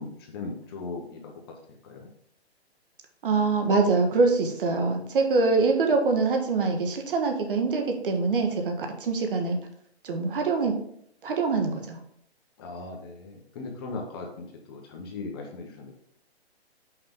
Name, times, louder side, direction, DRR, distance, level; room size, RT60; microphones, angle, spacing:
voice 1, 0.0-1.3 1.8-2.1 12.6-16.0, left 3 dB, 20° left, 1 dB, 0.8 m, -38 dB
voice 2, 3.2-9.6 10.0-10.8 11.2-12.0, right 4 dB, 55° right, 4 dB, 1.4 m, -24 dB
5.9 x 5.6 x 3.6 m, 0.71 s
hypercardioid pair, 155°, 32 cm